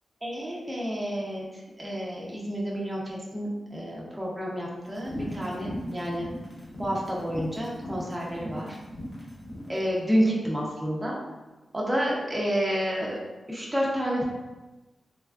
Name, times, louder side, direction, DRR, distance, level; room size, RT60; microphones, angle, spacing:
voice 1, 0.2-6.3 6.8-8.8 9.7-11.2 11.7-13.1 13.5-14.2, equal, 15° right, -4 dB, 0.6 m, -29 dB
sound 1, 4.9-9.7, equal, 55° left, 0.8 m, -39 dB
3.3 x 2.3 x 2.3 m, 1.1 s
wide cardioid pair, 100°, 0 cm